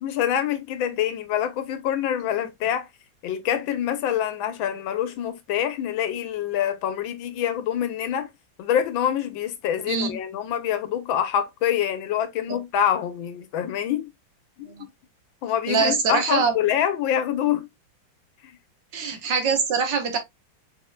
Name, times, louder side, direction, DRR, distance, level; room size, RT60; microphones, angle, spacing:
voice 1, 0.0-2.9 3.2-8.3 8.6-14.1 14.6-14.7 15.4-17.7, left 10 dB, 85° left, 1.6 m, -25 dB
voice 2, 9.9-10.2 12.5-12.6 14.7-14.9 15.7-16.5 18.9-20.2, right 5 dB, 70° right, 1.8 m, -23 dB
5.0 x 4.3 x 2.3 m
omnidirectional pair, 2.1 m